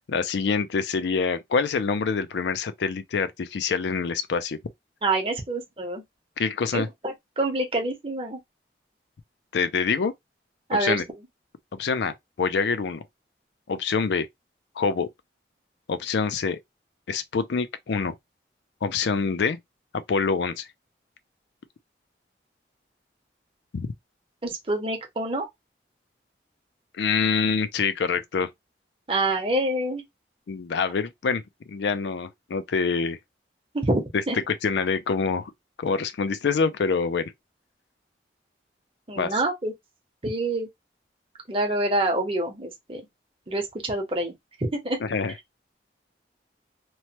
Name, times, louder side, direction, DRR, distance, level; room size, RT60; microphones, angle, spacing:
voice 1, 0.1-4.6 6.4-6.9 9.5-10.1 10.7-11.0 11.7-13.0 13.7-14.3 14.8-15.1 15.9-16.6 17.1-18.1 18.8-19.6 19.9-20.7 23.7-23.9 27.0-28.5 30.5-31.4 31.7-33.2 34.5-35.5 35.8-37.3 39.2-39.3 45.0-45.3, left 5 dB, 80° left, 0.4 m, -26 dB
voice 2, 5.0-6.0 6.7-8.4 10.7-11.0 24.4-25.5 29.1-30.0 33.7-34.4 39.1-39.7 40.2-40.7 41.5-43.0 43.5-44.3 44.6-45.0, right 2 dB, 30° right, 0.7 m, -26 dB
3.0 x 2.1 x 2.8 m
head